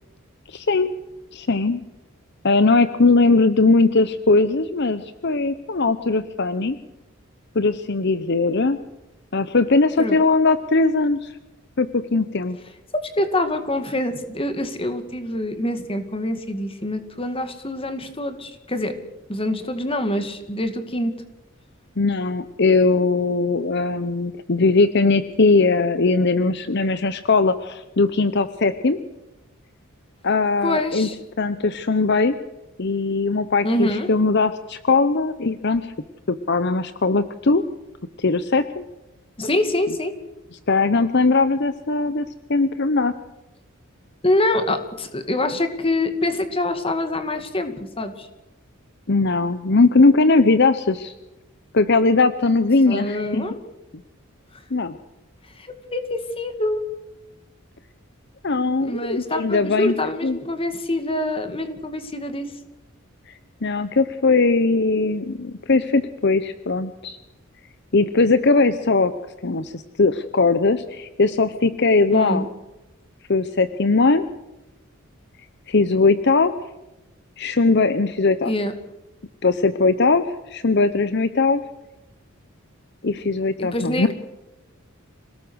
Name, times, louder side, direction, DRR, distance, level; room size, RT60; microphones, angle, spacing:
voice 1, 0.5-0.9 1.3-1.8 2.4-6.8 7.5-8.8 9.3-11.3 11.8-12.6 22.0-29.0 30.2-31.1 31.4-32.3 32.8-35.9 36.3-37.6 38.2-38.8 40.7-43.1 49.1-51.1 51.7-53.4 54.7-54.9 58.4-59.9 60.2-60.4 63.3-63.4 63.6-67.2 67.9-69.1 69.4-72.5 73.3-74.3 75.7-76.5 77.4-78.5 79.4-81.6 83.0-84.1, left 3 dB, 55° left, 12 dB, 0.9 m, -19 dB
voice 2, 12.9-19.0 19.3-21.1 30.6-31.2 33.6-34.1 39.4-40.1 44.2-48.3 52.9-53.5 55.6-56.8 58.8-62.5 72.1-72.5 78.4-78.7 83.6-84.1, left 1 dB, 25° left, 8 dB, 2.2 m, -25 dB
26.5 x 18.5 x 6.4 m, 0.98 s
head